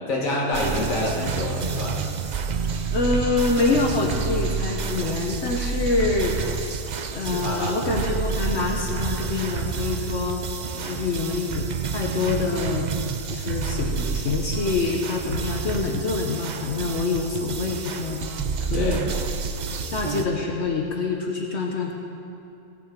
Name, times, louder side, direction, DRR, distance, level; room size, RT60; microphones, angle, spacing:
voice 1, 0.1-2.0 7.2-7.8 10.7-11.0 18.7-19.1, left 1 dB, 85° left, -3 dB, 1.9 m, -28 dB
sound 1, 0.5-20.2, right 6 dB, 55° right, 0.5 m, -29 dB
voice 2, 2.9-6.8 7.1-10.4 10.8-12.9 13.3-18.3 18.6-19.0 19.7-21.9, left 4 dB, 60° left, 1 dB, 1.1 m, -26 dB
17.5 x 6.6 x 5.1 m, 2.7 s
omnidirectional pair, 1.4 m